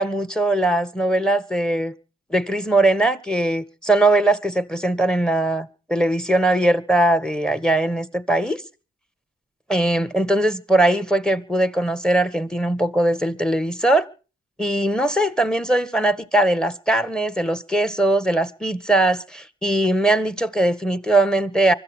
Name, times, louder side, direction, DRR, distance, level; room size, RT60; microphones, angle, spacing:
voice 1, 0.0-1.9 2.3-8.6 9.7-14.1 14.6-21.7, right 1 dB, ahead, 1.8 m, -20 dB
24.5 x 13.5 x 3.4 m
supercardioid pair, 45°, 30 cm